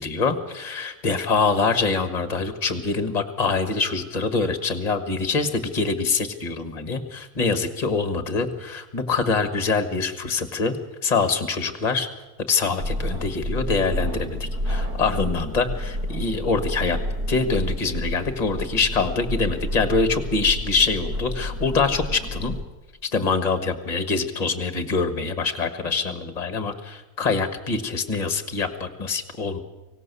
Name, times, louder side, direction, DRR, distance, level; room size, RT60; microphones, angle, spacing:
voice 1, 0.0-10.8 11.0-12.1 12.5-17.0 17.3-22.6 23.1-29.6, left 4 dB, 25° left, 9 dB, 1.6 m, -24 dB
sound 1, 12.8-22.6, equal, 85° right, 2.8 m, -29 dB
24.5 x 17.0 x 6.9 m, 1.1 s
omnidirectional pair, 1.6 m